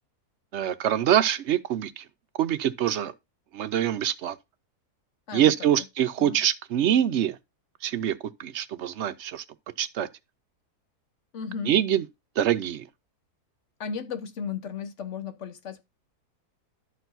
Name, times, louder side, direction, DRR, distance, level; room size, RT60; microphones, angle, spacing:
voice 1, 0.5-2.0 2.4-3.1 3.5-4.4 5.3-7.4 7.8-9.4 9.8-10.1 11.7-12.0 12.4-12.8, right 10 dB, 65° right, 0.7 m, -25 dB
voice 2, 5.3-5.8 6.2-6.4 11.3-11.8 13.8-15.8, left 6 dB, 55° left, 1.2 m, -35 dB
12.0 x 4.5 x 4.0 m
omnidirectional pair, 1.7 m